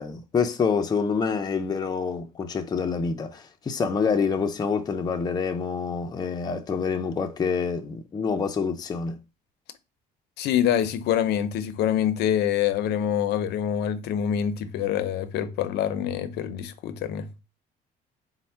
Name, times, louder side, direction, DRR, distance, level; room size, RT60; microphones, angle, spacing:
voice 1, 0.0-9.2, left 5 dB, 25° left, 0.5 m, -27 dB
voice 2, 10.4-17.3, left 9 dB, 75° left, 0.5 m, -25 dB
4.2 x 2.1 x 4.3 m
cardioid pair, 110°, 17 cm